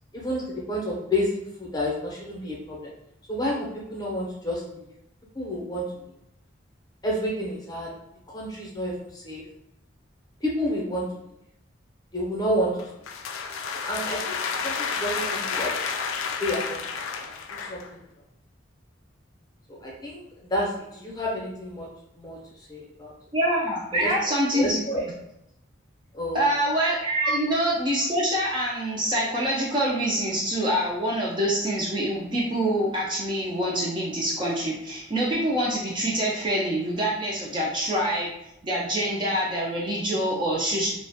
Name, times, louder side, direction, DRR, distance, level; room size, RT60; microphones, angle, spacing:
voice 1, 0.1-2.9 3.3-4.8 5.3-5.8 7.0-7.9 8.3-9.4 10.4-11.1 12.1-12.7 13.8-15.7 16.4-16.8 17.2-18.0 19.7-20.2 20.5-21.9 22.2-23.1 24.0-24.1 24.5-25.0 26.1-26.4 27.2-27.3, equal, 20° left, -4 dB, 0.6 m, -30 dB
sound 1, 12.8-17.9, left 5 dB, 90° left, 0.3 m, -30 dB
voice 2, 23.3-24.8 26.3-38.3 38.6-40.9, right 1 dB, 25° right, -4 dB, 0.3 m, -25 dB
2.3 x 2.1 x 2.6 m, 0.82 s
head